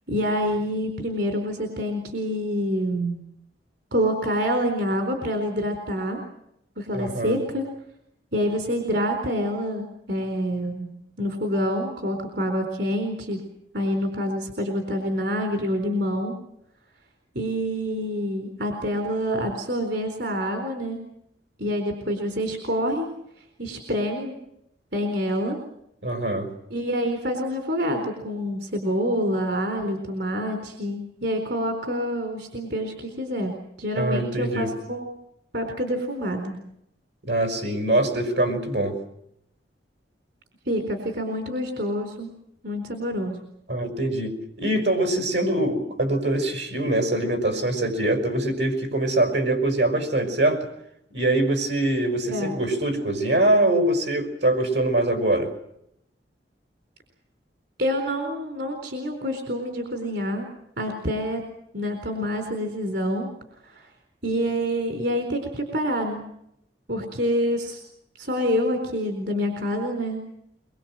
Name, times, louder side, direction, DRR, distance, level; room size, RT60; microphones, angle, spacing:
voice 1, 0.1-3.2 3.9-6.2 6.8-7.6 8.3-10.9 11.2-13.4 13.7-16.3 17.3-21.0 21.6-23.1 23.4-24.3 24.9-25.6 26.7-35.2 35.5-36.6 40.7-42.3 42.6-43.4 52.3-52.5 57.8-60.5 60.8-61.4 61.7-63.3 63.6-63.9 64.2-66.2 66.9-67.8 68.2-70.2, equal, 65° right, 4 dB, 4.2 m, -27 dB
voice 2, 6.9-7.4 26.0-26.5 34.0-34.7 37.3-39.0 43.7-50.7 51.1-55.5, right 1 dB, 85° right, 6 dB, 5.9 m, -23 dB
24.0 x 24.0 x 7.7 m, 0.76 s
head